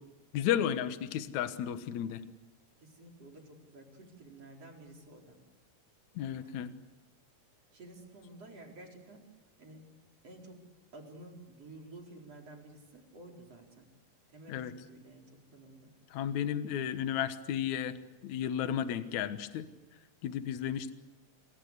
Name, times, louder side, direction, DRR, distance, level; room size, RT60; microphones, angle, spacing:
voice 1, 0.3-2.2 6.2-6.7 14.5-14.7 16.1-18.0 18.2-19.7 20.2-20.9, left 9 dB, 65° left, 10 dB, 2.4 m, -33 dB
voice 2, 2.8-5.4 6.4-6.8 7.7-9.2 9.6-9.9 10.2-10.6 10.9-13.9 14.3-15.9, right 2 dB, 45° right, 1 dB, 5.3 m, -52 dB
28.5 x 24.0 x 8.2 m, 1.1 s
omnidirectional pair, 3.9 m